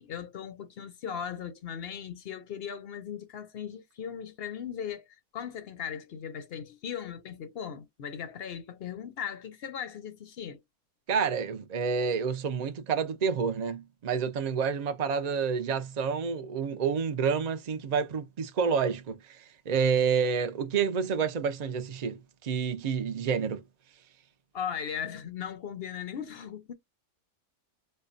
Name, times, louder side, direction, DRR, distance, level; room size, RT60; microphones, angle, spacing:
voice 1, 0.0-5.1 5.3-10.6 24.5-26.7, left 8 dB, 55° left, 0.7 m, -38 dB
voice 2, 11.1-23.6, right 6 dB, 70° right, 0.4 m, -29 dB
5.3 x 2.2 x 2.5 m
omnidirectional pair, 1.6 m